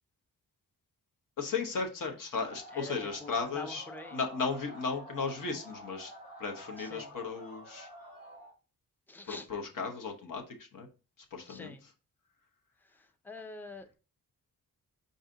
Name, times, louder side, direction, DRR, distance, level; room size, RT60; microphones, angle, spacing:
voice 1, 1.4-3.8 4.1-6.1 6.4-7.9 9.3-10.9 11.3-11.7, left 5 dB, 60° left, 3 dB, 1.0 m, -35 dB
sound 1, 2.4-8.5, equal, 40° left, 1.3 m, -49 dB
voice 2, 2.7-4.2 6.8-7.2 9.1-9.5 11.5-11.8 12.8-14.0, left 2 dB, 5° left, 8 dB, 0.4 m, -46 dB
4.8 x 2.7 x 3.7 m, 0.33 s
wide cardioid pair, 135°, 36 cm